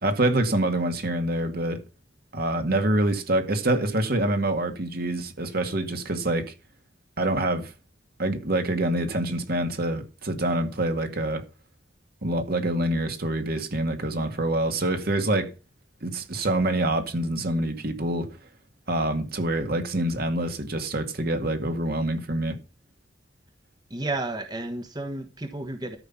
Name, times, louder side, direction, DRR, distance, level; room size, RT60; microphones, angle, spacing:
voice 1, 0.0-1.8 2.3-6.5 7.2-7.7 8.2-11.4 12.2-15.5 16.0-18.3 18.9-22.6, right 1 dB, 55° right, 2.0 m, -26 dB
voice 2, 23.9-26.0, right 2 dB, 25° right, 1.2 m, -32 dB
13.0 x 5.6 x 7.1 m
head